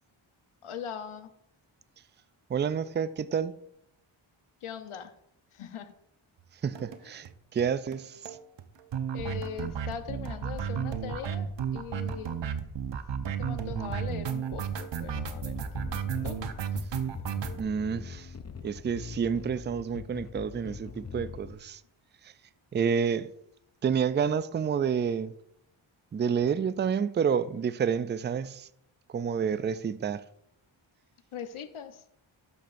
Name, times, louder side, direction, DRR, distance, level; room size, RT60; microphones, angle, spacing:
voice 1, 0.6-1.3 4.6-5.1 5.5-5.9 9.1-12.4 13.4-15.6 16.2-16.4 31.3-32.0, left 8 dB, 75° left, 0.9 m, -40 dB
voice 2, 2.5-3.5 6.6-8.4 17.6-18.3 18.6-21.8 22.2-22.3 22.7-23.3 23.8-25.3 26.1-28.7 29.1-30.2, right 7 dB, 25° right, 0.3 m, -29 dB
sound 1, 6.8-7.0 7.3-7.4 7.6-7.7 7.9-8.0 8.3-17.6, right 7 dB, 60° right, 0.8 m, -33 dB
sound 2, 15.1-21.5, left 5 dB, 35° left, 0.6 m, -42 dB
12.0 x 6.9 x 2.5 m
cardioid pair, 65°, 50 cm